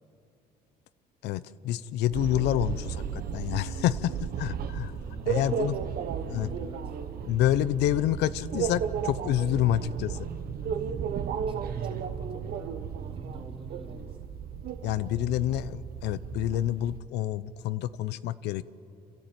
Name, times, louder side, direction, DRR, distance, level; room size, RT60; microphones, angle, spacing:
voice 1, 1.2-4.9 5.3-5.8 6.3-6.5 7.3-10.3 14.8-18.6, left 13 dB, 80° left, 16 dB, 0.7 m, -28 dB
sound 1, 2.1-17.0, right 8 dB, 65° right, 1.2 m, -34 dB
voice 2, 4.9-7.0 11.3-14.2, right 2 dB, 30° right, 1 dB, 3.4 m, -47 dB
27.5 x 13.5 x 9.2 m, 2.6 s
cardioid pair, 110°, 17 cm